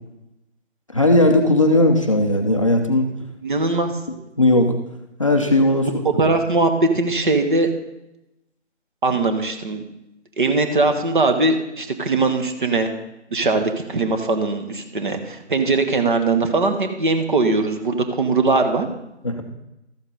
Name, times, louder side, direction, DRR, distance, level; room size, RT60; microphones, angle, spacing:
voice 1, 0.9-3.1 4.4-4.8 5.2-5.9 19.2-19.4, left 1 dB, 30° left, 3 dB, 0.6 m, -17 dB
voice 2, 3.4-3.9 5.8-5.9 6.2-7.7 9.0-9.8 10.4-12.9 13.3-18.9, right 3 dB, 45° right, 6 dB, 1.2 m, -20 dB
13.0 x 7.2 x 4.0 m, 0.90 s
figure-of-eight pair, 155°, 36 cm